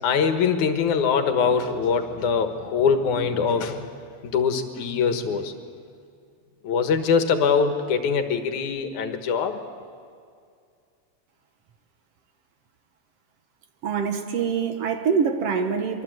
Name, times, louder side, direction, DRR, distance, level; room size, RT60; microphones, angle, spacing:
voice 1, 0.0-3.9 4.2-5.5 6.6-9.6, left 6 dB, 85° left, 7 dB, 2.8 m, -23 dB
voice 2, 13.8-16.0, right 6 dB, 60° right, 6 dB, 2.1 m, -24 dB
24.0 x 23.5 x 7.9 m, 2.3 s
omnidirectional pair, 3.4 m